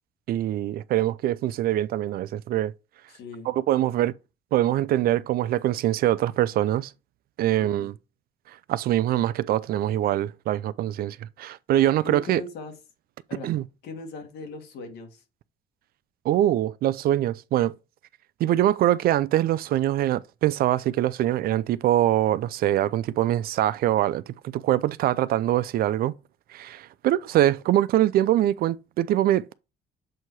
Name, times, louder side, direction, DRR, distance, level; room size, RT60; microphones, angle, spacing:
voice 1, 0.3-2.7 3.5-4.1 4.5-6.9 7.4-7.9 8.7-12.4 13.4-13.6 16.2-17.7 18.4-26.1 26.5-29.6, right 13 dB, 60° right, 0.4 m, -23 dB
voice 2, 3.1-3.5 7.6-7.9 12.0-12.8 13.3-13.5 13.8-15.2, left 3 dB, 75° left, 1.9 m, -39 dB
7.6 x 2.8 x 4.7 m
cardioid pair, 110°, 17 cm